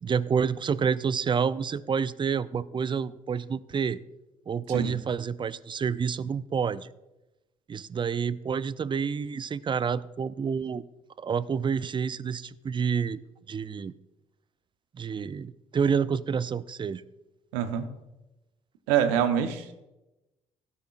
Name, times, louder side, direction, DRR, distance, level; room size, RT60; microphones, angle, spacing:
voice 1, 0.0-4.0 4.5-6.9 7.7-10.8 11.2-13.2 13.5-13.9 14.9-17.0, right 6 dB, 30° right, 18 dB, 0.5 m, -28 dB
voice 2, 17.5-17.9 18.9-19.7, right 9 dB, 75° right, 8 dB, 1.0 m, -25 dB
16.5 x 9.8 x 2.5 m, 1.0 s
figure-of-eight pair, 50°, 17 cm